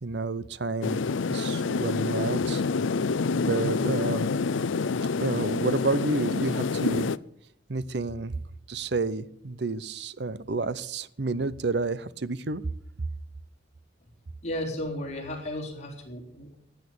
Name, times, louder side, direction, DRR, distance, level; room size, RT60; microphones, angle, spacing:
voice 1, 0.0-1.0 1.3-2.6 3.4-4.3 5.2-7.1 7.7-8.3 8.7-12.7, right 3 dB, 60° right, 18 dB, 0.7 m, -30 dB
sound 1, 0.8-7.2, left 4 dB, 85° left, 0.5 m, -27 dB
voice 2, 14.4-16.5, left 1 dB, 35° left, 0 dB, 3.9 m, -34 dB
16.0 x 9.0 x 8.5 m, 0.72 s
head